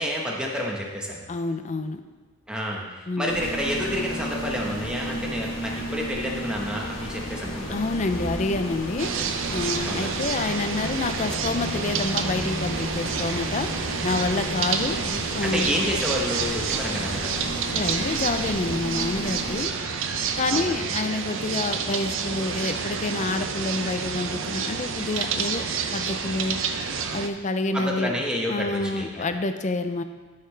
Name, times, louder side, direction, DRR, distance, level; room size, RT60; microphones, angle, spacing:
voice 1, 0.0-1.2 2.5-7.8 9.8-10.2 14.8-17.5 20.5-20.9 27.7-29.1, equal, 5° right, -2 dB, 1.2 m, -29 dB
voice 2, 1.3-2.0 3.1-3.4 7.7-9.1 9.5-13.7 14.0-15.0 15.3-15.7 17.7-19.7 20.4-25.6 25.9-26.6 27.1-28.2 28.5-30.0, left 2 dB, 35° left, 9 dB, 0.5 m, -28 dB
sound 1, 3.3-19.7, equal, 80° left, 1.5 m, -34 dB
sound 2, 9.0-27.3, right 6 dB, 70° right, 0.6 m, -29 dB
12.5 x 5.7 x 3.3 m, 1.3 s
head